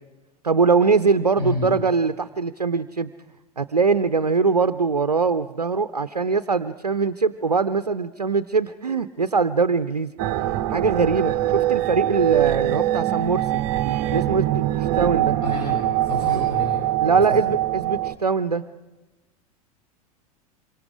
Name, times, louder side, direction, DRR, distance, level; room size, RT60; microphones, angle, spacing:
voice 1, 0.4-3.1 3.6-10.1 10.7-13.6 14.1-15.4 16.3-16.5 17.0-18.6, right 4 dB, 90° right, 12 dB, 0.6 m, -22 dB
sound 1, 10.2-18.1, right 14 dB, 45° right, 0.9 m, -23 dB
voice 2, 15.4-16.7 17.1-17.4, left 2 dB, 30° left, 0 dB, 5.9 m, -30 dB
26.5 x 24.0 x 5.0 m, 1.1 s
figure-of-eight pair, 85°, 20 cm